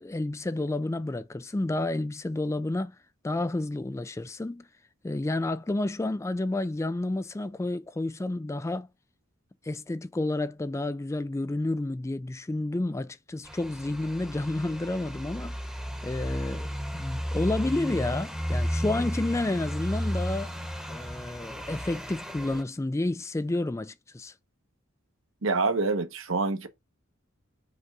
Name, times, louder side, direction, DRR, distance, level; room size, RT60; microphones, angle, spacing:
voice 1, 0.0-3.0 3.2-4.7 5.0-8.9 9.6-15.6 16.0-20.5 20.9-24.3, left 2 dB, 15° left, 0.3 m, -30 dB
sound 1, 13.4-22.6, equal, 5° right, 1.0 m, -33 dB
voice 2, 25.4-26.7, right 3 dB, 65° right, 1.0 m, -26 dB
5.3 x 3.5 x 5.4 m
head